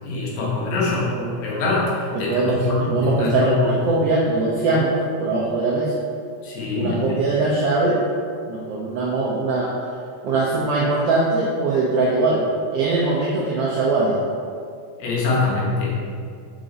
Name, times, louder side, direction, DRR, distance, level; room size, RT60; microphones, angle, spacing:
voice 1, 0.0-1.1 1.4-3.8 6.4-7.0 15.0-16.0, left 3 dB, 75° left, -5 dB, 2.5 m, -23 dB
voice 2, 0.9-1.4 2.1-6.0 6.7-8.0 8.4-9.9 10.2-12.4 12.7-14.2, right 3 dB, 80° right, -5 dB, 1.4 m, -21 dB
5.1 x 4.7 x 3.9 m, 2.2 s
omnidirectional pair, 3.5 m